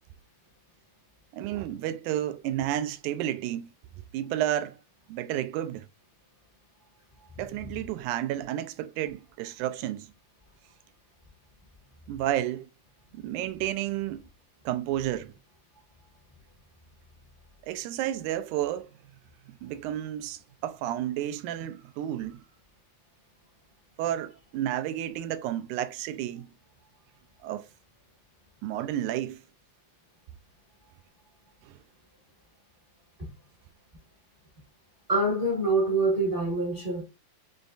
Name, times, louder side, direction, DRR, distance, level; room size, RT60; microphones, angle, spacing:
voice 1, 1.3-3.7 4.1-4.8 5.1-5.9 7.4-10.1 12.1-12.7 13.1-14.3 14.7-15.3 17.6-18.9 19.6-22.4 24.0-26.5 27.4-27.7 28.6-29.4 31.6-31.8, right 12 dB, 80° right, 1.8 m, -31 dB
voice 2, 35.1-37.0, right 2 dB, 35° right, 0.8 m, -25 dB
6.2 x 3.3 x 2.5 m
omnidirectional pair, 3.8 m